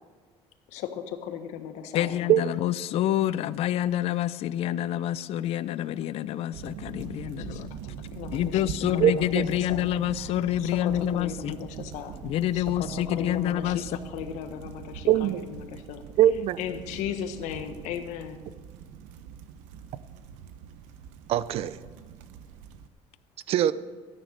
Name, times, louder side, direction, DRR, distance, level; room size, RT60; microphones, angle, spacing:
voice 1, 0.7-2.2 7.4-7.8 8.1-9.3 9.7-9.8 10.2-12.2 12.5-16.0 16.6-18.4, left 9 dB, 80° left, 8 dB, 1.4 m, -37 dB
voice 2, 1.9-7.7 8.3-11.6 12.2-13.8, left 12 dB, 55° left, 15 dB, 0.5 m, -27 dB
sound 1, 6.5-22.9, right 8 dB, 90° right, 0.9 m, -42 dB
voice 3, 9.0-9.5 15.1-15.4 16.2-16.6 21.3-21.8 23.5-23.7, right 12 dB, 55° right, 16 dB, 0.6 m, -22 dB
13.5 x 9.9 x 6.7 m, 1.5 s
cardioid pair, 145°, 12 cm